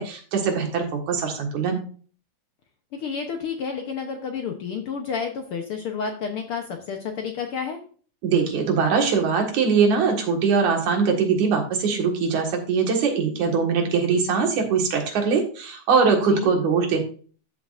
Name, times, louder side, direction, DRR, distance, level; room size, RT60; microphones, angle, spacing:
voice 1, 0.0-1.8 8.2-17.0, right 5 dB, 75° right, 3 dB, 3.1 m, -22 dB
voice 2, 2.9-7.8 16.2-16.5, left 6 dB, 65° left, 3 dB, 1.4 m, -30 dB
13.5 x 5.9 x 2.5 m, 0.41 s
omnidirectional pair, 3.4 m